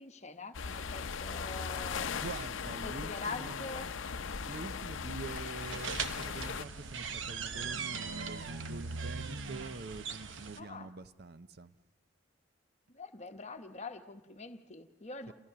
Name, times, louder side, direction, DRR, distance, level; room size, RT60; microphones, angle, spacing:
voice 1, 0.0-2.1 2.8-3.9 10.6-10.9 12.9-15.3, left 3 dB, 35° left, 8 dB, 1.0 m, -44 dB
sound 1, 0.5-6.6, left 6 dB, 80° left, 0.6 m, -38 dB
voice 2, 2.0-3.6 4.5-11.7 15.3-15.4, right 3 dB, 55° right, 12 dB, 0.6 m, -45 dB
sound 2, 5.6-10.6, right 5 dB, 75° right, 1.0 m, -40 dB
28.5 x 14.5 x 6.9 m, 1.2 s
head